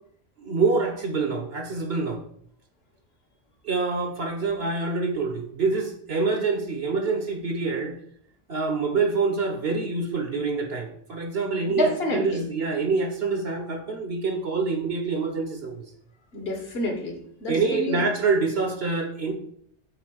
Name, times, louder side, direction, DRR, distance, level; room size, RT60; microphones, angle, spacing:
voice 1, 0.4-2.2 3.6-8.0 8.5-15.8 17.5-19.3, right 4 dB, 65° right, 4 dB, 1.3 m, -26 dB
voice 2, 11.7-12.4 16.3-18.0, equal, 60° left, 2 dB, 1.8 m, -28 dB
7.3 x 4.0 x 6.2 m, 0.64 s
omnidirectional pair, 1.2 m